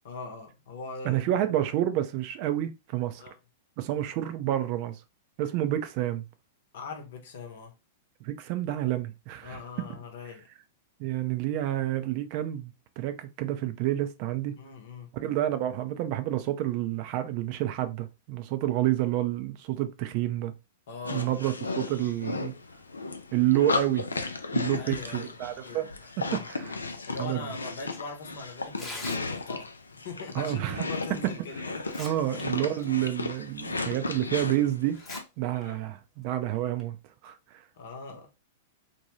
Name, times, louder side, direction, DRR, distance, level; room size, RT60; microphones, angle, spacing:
voice 1, 0.0-1.3 3.2-3.4 6.7-7.7 9.4-10.5 14.6-15.1 20.9-21.3 24.7-26.0 26.3-32.1 35.5-35.8 37.7-38.3, left 4 dB, 65° left, 0.8 m, -41 dB
voice 2, 1.0-3.2 3.8-5.0 5.4-6.2 8.2-9.6 11.0-14.6 15.2-20.5 21.1-22.5 23.3-25.9 26.2-26.7 27.2-27.4 30.3-30.8 32.0-35.0 35.4-37.0 37.2-37.6, right 13 dB, 45° right, 0.4 m, -29 dB
sound 1, 21.0-35.2, left 3 dB, 85° left, 0.3 m, -35 dB
Tearing, 28.6-29.6 31.1-31.2 31.7-32.4 32.8-32.9 33.6-33.7 34.9-35.2 35.6-35.7 36.5-36.8, left 2 dB, 15° left, 0.9 m, -41 dB
2.7 x 2.2 x 3.0 m
figure-of-eight pair, 100°, 0 cm